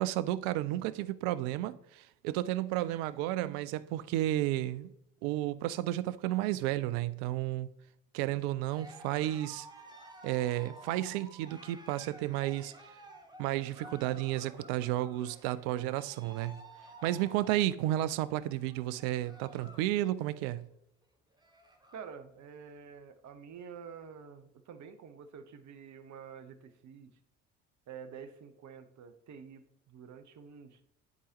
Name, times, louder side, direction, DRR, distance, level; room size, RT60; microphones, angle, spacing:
voice 1, 0.0-4.9 5.2-7.7 8.1-9.7 10.2-12.7 13.4-16.6 17.0-20.7, right 14 dB, 70° right, 0.6 m, -32 dB
Cheering, 8.6-19.9 20.2-20.6 21.0-21.1 21.3-22.1, right 1 dB, 10° right, 1.5 m, -53 dB
voice 2, 21.9-27.1 27.9-30.8, right 6 dB, 50° right, 1.1 m, -48 dB
11.0 x 4.9 x 3.0 m
hypercardioid pair, 60°, 37 cm